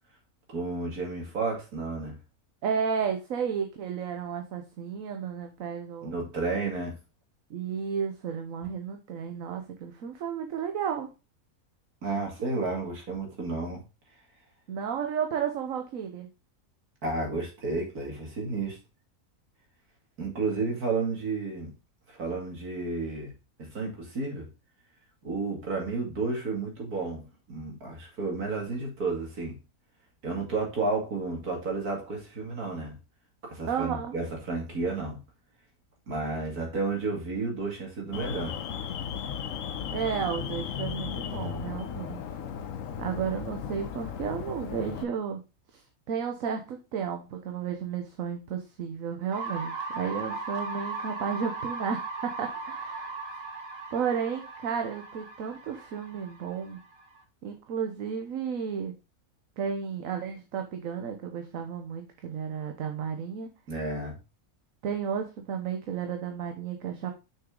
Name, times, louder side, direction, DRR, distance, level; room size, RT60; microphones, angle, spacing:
voice 1, 0.5-2.2 6.0-7.0 12.0-13.8 17.0-18.8 20.2-21.7 22.1-23.3 23.6-24.5 25.2-29.6 30.2-32.9 33.4-35.2 36.1-38.5 63.7-64.2, right 3 dB, 80° right, 0 dB, 2.9 m, -32 dB
voice 2, 2.6-6.2 7.5-11.1 14.7-16.3 33.7-34.1 39.9-42.2 43.0-45.4 45.7-45.8 46.1-53.2 53.9-56.8 57.4-58.9 59.6-63.5 64.8-67.1, right 7 dB, 65° right, 4 dB, 1.2 m, -33 dB
Alarm, 38.1-45.0, left 8 dB, 65° left, 1.1 m, -35 dB
sound 1, 49.3-57.2, right 3 dB, 45° right, 1.6 m, -38 dB
6.4 x 6.0 x 3.7 m, 0.29 s
omnidirectional pair, 1.6 m